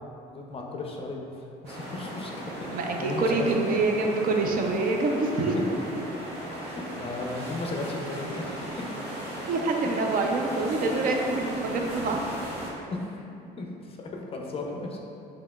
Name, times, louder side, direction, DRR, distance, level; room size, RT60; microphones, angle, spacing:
voice 1, 0.3-1.2 1.6-2.7 3.0-3.8 6.6-8.4 12.9-15.0, left 3 dB, 35° left, 0 dB, 0.4 m, -35 dB
sound 1, 1.6-12.7, right 1 dB, 80° right, 0.9 m, -37 dB
voice 2, 2.7-5.8 9.5-12.2, right 3 dB, 55° right, 2 dB, 0.4 m, -26 dB
4.9 x 2.9 x 2.3 m, 2.6 s
cardioid pair, 110°, 17 cm